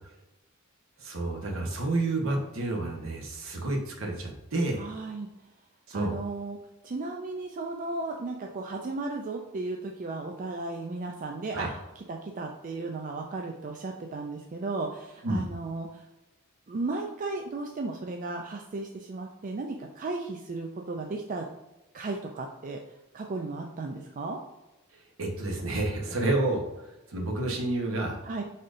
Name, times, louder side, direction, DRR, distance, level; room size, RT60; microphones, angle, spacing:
voice 1, 1.0-4.8 5.9-6.2 11.5-11.7 15.2-15.4 25.2-28.2, right 2 dB, 65° right, 2 dB, 1.0 m, -30 dB
voice 2, 4.8-5.3 5.9-6.6 6.8-16.1 16.7-21.5 21.9-22.8 23.1-24.4 28.2-28.4, right 3 dB, 35° right, 2 dB, 0.4 m, -35 dB
4.9 x 4.2 x 2.5 m, 0.99 s
head